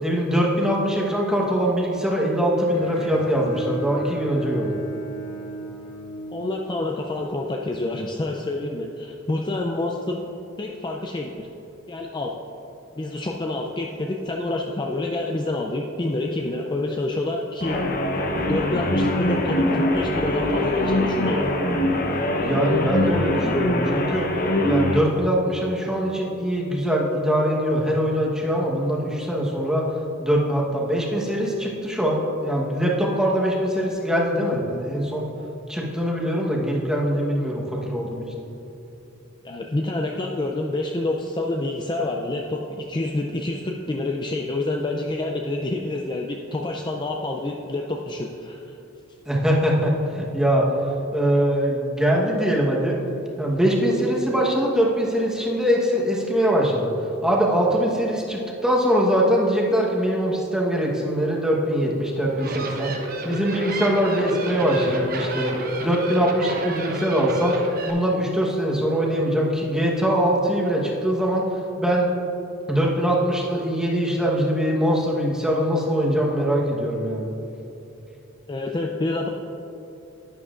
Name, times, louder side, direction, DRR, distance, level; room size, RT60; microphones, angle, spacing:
voice 1, 0.0-4.8 22.4-24.3 24.6-29.8 30.2-35.3 35.7-38.2 49.3-50.7 51.1-53.0 53.4-56.9 57.2-62.9 63.2-65.5 65.8-67.6 67.9-71.4 71.8-72.1 72.7-77.3, equal, 5° right, -3 dB, 1.1 m, -22 dB
Bowed string instrument, 2.7-6.9, right 2 dB, 80° left, 1.3 m, -35 dB
voice 2, 6.3-10.2 10.6-11.5 11.9-12.3 13.0-17.8 18.5-21.5 39.4-48.8 78.5-79.3, left 2 dB, 20° left, 1 dB, 0.4 m, -27 dB
sound 1, 17.6-25.0, left 1 dB, 45° left, 0.8 m, -23 dB
sound 2, 62.2-67.9, right 1 dB, 45° right, 0.9 m, -31 dB
11.0 x 9.5 x 2.5 m, 3.0 s
head